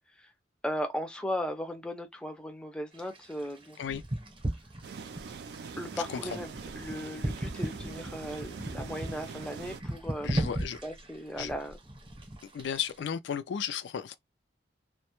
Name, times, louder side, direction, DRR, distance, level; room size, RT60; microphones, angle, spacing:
voice 1, 0.6-3.8 5.8-10.5 10.8-11.8, equal, 5° left, 0.4 m, -37 dB
sound 1, 2.9-13.0, right 1 dB, 30° right, 0.7 m, -38 dB
sound 2, 4.8-9.8, right 5 dB, 60° right, 0.3 m, -43 dB
voice 2, 10.2-10.8 11.4-11.5 12.5-14.2, left 8 dB, 75° left, 0.3 m, -34 dB
2.1 x 2.0 x 2.9 m
head